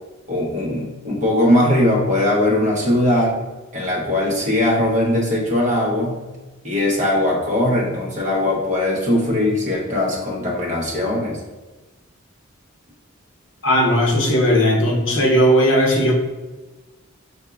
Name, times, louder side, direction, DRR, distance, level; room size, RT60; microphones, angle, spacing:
voice 1, 0.3-3.4 3.7-6.2 6.6-11.4, left 1 dB, 35° right, -3 dB, 1.0 m, -20 dB
voice 2, 13.6-16.1, equal, 65° left, 0 dB, 0.9 m, -16 dB
6.6 x 2.7 x 2.3 m, 1.2 s
head